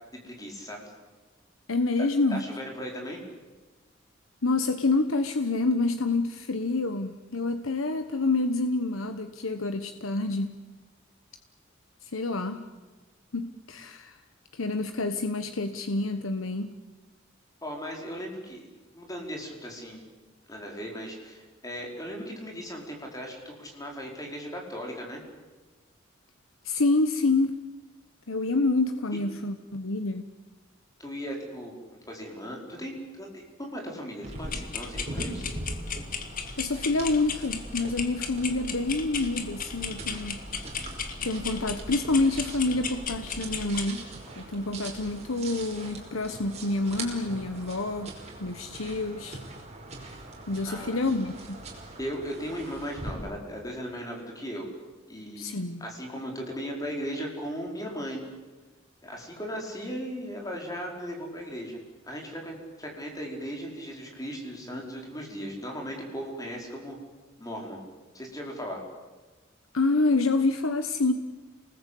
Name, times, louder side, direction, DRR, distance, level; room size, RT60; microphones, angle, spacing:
voice 1, 0.1-0.9 2.3-3.2 17.6-18.7 18.9-20.1 20.5-25.2 31.0-35.6 50.6-51.0 52.0-54.7 55.1-55.4 55.8-58.2 59.0-67.0 67.4-67.8 68.1-68.8, equal, 20° left, 0 dB, 5.0 m, -37 dB
voice 2, 1.7-2.4 4.4-10.5 12.0-12.7 13.3-14.2 14.5-16.7 26.6-27.6 28.3-30.3 36.6-40.4 41.2-44.1 44.4-49.4 50.5-51.6 55.4-55.8 69.7-71.1, left 3 dB, 90° left, 8 dB, 1.2 m, -27 dB
sound 1, 34.2-53.1, right 2 dB, 35° right, 5.3 m, -42 dB
sound 2, 34.4-43.9, left 6 dB, 45° left, 1.9 m, -36 dB
28.0 x 20.0 x 8.5 m, 1.2 s
head